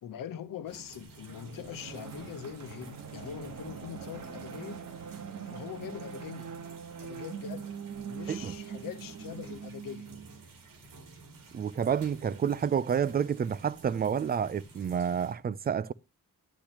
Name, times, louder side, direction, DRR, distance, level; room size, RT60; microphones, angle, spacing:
voice 1, 0.0-4.8 5.4-6.5 7.0-7.7 8.0-10.1, left 9 dB, 80° left, 1.0 m, -42 dB
sound 1, 0.7-15.3, right 3 dB, 85° right, 2.7 m, -52 dB
sound 2, 1.3-10.5, right 7 dB, 60° right, 1.2 m, -43 dB
voice 2, 11.5-15.9, right 7 dB, 30° right, 0.4 m, -29 dB
10.5 x 10.0 x 2.9 m
wide cardioid pair, 140°, 33 cm